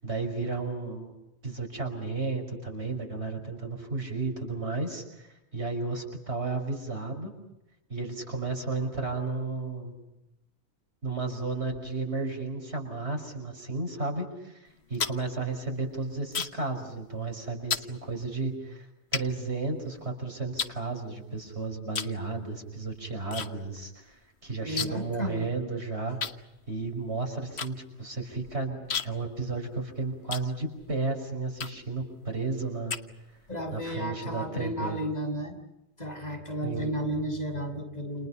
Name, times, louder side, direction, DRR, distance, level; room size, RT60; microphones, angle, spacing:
voice 1, 0.0-1.1 1.4-7.3 7.9-9.9 11.0-18.9 19.1-26.2 26.7-33.0 33.7-35.0 36.6-36.9, right 3 dB, 80° right, 3 dB, 6.1 m, -33 dB
sound 1, 14.7-16.7 17.0-17.3 17.7-17.9 18.5-18.6 19.1-20.1 20.6-21.4 21.9-22.2 22.5-23.5 23.8-23.9 24.1-25.1 25.4-25.5 26.2-31.0 31.5-32.0 32.5-33.5, left 6 dB, 75° left, 1.4 m, -35 dB
voice 2, 24.6-25.5 33.5-35.6 36.0-38.3, equal, 40° left, 3 dB, 6.0 m, -33 dB
29.5 x 29.0 x 5.7 m, 0.89 s
omnidirectional pair, 1.1 m